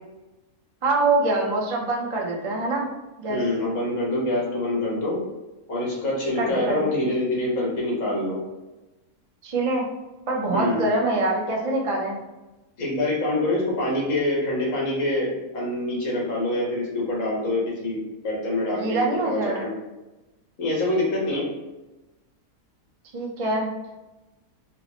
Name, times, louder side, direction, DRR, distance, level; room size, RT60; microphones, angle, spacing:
voice 1, 0.8-2.9 3.2-3.4 6.4-6.9 9.4-9.9 10.3-12.2 18.8-19.6 23.1-23.7, right 2 dB, 60° right, -2 dB, 0.3 m, -24 dB
voice 2, 3.3-5.2 5.7-8.4 10.5-10.9 12.8-18.0 18.2-19.0 19.2-19.7 20.6-21.5, left 1 dB, 60° left, -4 dB, 1.5 m, -25 dB
4.5 x 2.0 x 2.8 m, 1.1 s
omnidirectional pair, 1.5 m